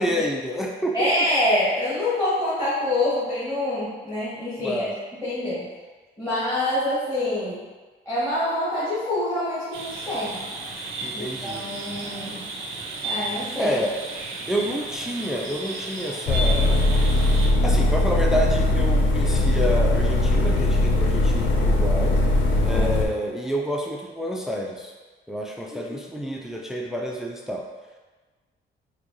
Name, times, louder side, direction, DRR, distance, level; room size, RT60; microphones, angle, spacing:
voice 1, 0.0-1.3 4.6-5.0 11.0-11.6 13.6-14.0 14.5-16.8 17.6-22.2 22.6-24.9 25.3-27.6, equal, ahead, 0 dB, 0.4 m, -28 dB
voice 2, 0.9-4.9 5.2-5.7 6.2-7.6 8.0-10.5 11.1-12.5 13.0-13.8 22.7-22.8 25.9-26.0 26.2-26.6, left 1 dB, 15° left, -12 dB, 1.2 m, -26 dB
sound 1, 9.7-17.5, right 2 dB, 85° right, 0.6 m, -33 dB
sound 2, 16.3-23.0, left 2 dB, 70° left, 0.5 m, -20 dB
4.3 x 2.3 x 2.6 m, 1.3 s
cardioid pair, 90°, 20 cm